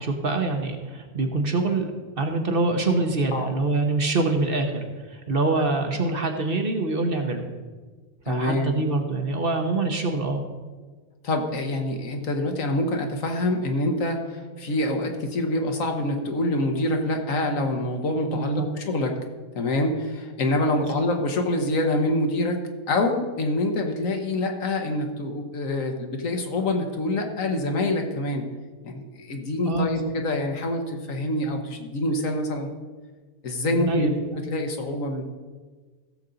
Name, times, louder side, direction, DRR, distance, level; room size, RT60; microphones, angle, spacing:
voice 1, 0.0-1.9 2.2-7.4 8.2-10.4 18.3-18.7 20.8-20.9 29.7-30.0 33.7-34.1, right 3 dB, 40° right, 4 dB, 1.2 m, -25 dB
voice 2, 8.3-8.8 11.2-19.1 19.5-22.6 22.9-28.4 28.8-32.7 33.4-34.1 34.5-35.2, left 1 dB, 60° left, 4 dB, 1.5 m, -26 dB
16.5 x 7.2 x 4.0 m, 1.4 s
omnidirectional pair, 1.6 m